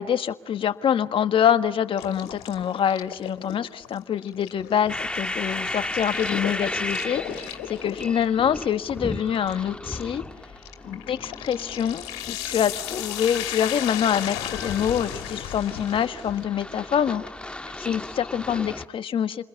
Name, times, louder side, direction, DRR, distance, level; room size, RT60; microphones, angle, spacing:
voice 1, 0.0-10.2 10.8-17.2 17.7-19.4, left 9 dB, 55° left, 10 dB, 1.5 m, -25 dB
sound 1, 2.0-16.4, left 12 dB, 85° left, 2.7 m, -36 dB
sound 2, 4.9-18.8, left 1 dB, 10° left, 1.4 m, -35 dB
29.5 x 21.0 x 8.5 m, 0.84 s
supercardioid pair, 65°, 11 cm